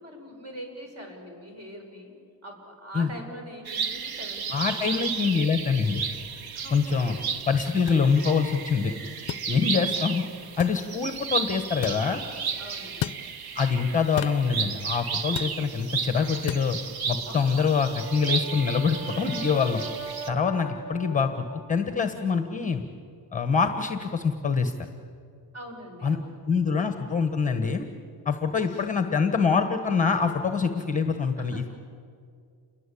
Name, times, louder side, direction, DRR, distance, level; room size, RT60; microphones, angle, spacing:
voice 1, 0.0-2.1 2.4-5.3 6.5-7.4 9.4-9.7 9.9-10.1 12.6-13.2 15.6-15.7 15.9-16.1 17.3-17.9 25.5-26.4 28.5-28.9 31.4-31.7, equal, 35° right, 3 dB, 6.5 m, -43 dB
sound 1, 3.6-20.3, right 6 dB, 55° right, 1.5 m, -33 dB
voice 2, 4.5-6.0 6.7-7.2 7.5-8.9 9.5-10.2 10.6-12.2 13.5-16.8 17.1-19.8 20.3-22.8 23.3-24.7 26.0-26.2 26.5-27.9 28.2-31.7, left 5 dB, 15° left, 7 dB, 1.3 m, -25 dB
sound 2, 7.9-8.0 9.3-9.5 10.6-10.8 11.8-12.0 13.0-13.2 14.2-14.4 15.4-15.6 16.5-16.7, left 13 dB, 50° left, 0.6 m, -32 dB
Brass instrument, 17.7-21.9, right 3 dB, 15° right, 4.0 m, -40 dB
29.0 x 21.5 x 8.5 m, 2.3 s
cardioid pair, 145°, 44 cm